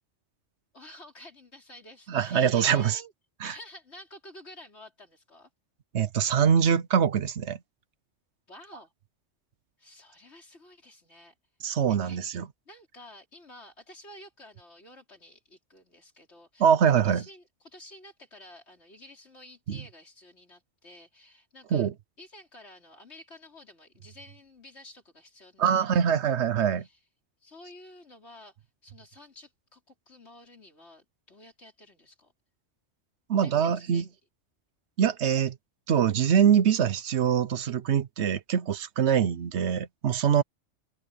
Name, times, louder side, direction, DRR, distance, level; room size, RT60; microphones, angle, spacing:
voice 1, 0.7-3.1 3.4-5.5 8.5-8.9 9.8-11.3 11.6-12.2 12.7-16.7 17.0-21.9 22.2-26.1 26.8-27.0 27.4-28.6 28.8-32.3 33.3-34.1, left 1 dB, 65° left, 4.9 m, -51 dB
voice 2, 2.1-3.0 3.4-3.5 5.9-7.6 11.6-12.5 16.6-17.2 19.7-19.8 21.7-21.9 25.6-26.9 33.3-34.0 35.0-35.5 35.9-40.4, right 8 dB, 70° right, 1.0 m, -24 dB
omnidirectional pair, 1.2 m